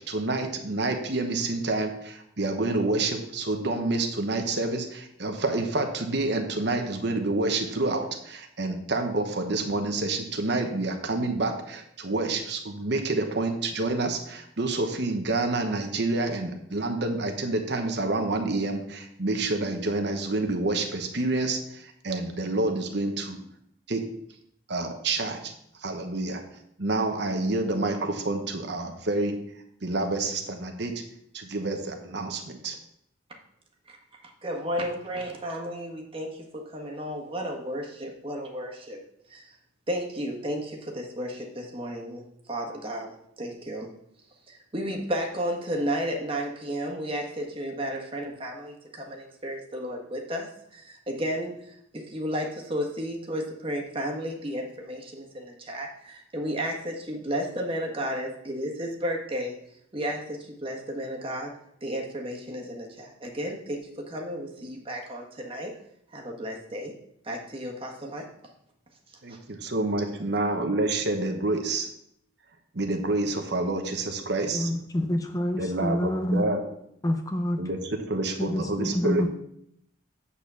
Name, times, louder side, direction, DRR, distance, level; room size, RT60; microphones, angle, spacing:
voice 1, 0.0-23.4 23.9-24.0 24.7-25.5 25.8-26.4 26.8-29.4 29.8-30.9 31.3-32.8 69.2-71.9 72.7-74.7 75.6-76.6 77.6-79.3, right 2 dB, 55° right, 0.9 m, -28 dB
voice 2, 34.2-39.0 39.3-39.6 39.9-43.9 44.5-59.6 59.9-61.5 61.8-65.7 66.1-66.9 67.2-68.3 69.1-69.4, equal, 25° right, 1.4 m, -33 dB
voice 3, 74.5-76.5 77.0-77.6 78.4-79.3, left 1 dB, 15° left, 0.5 m, -27 dB
8.4 x 4.2 x 6.9 m
head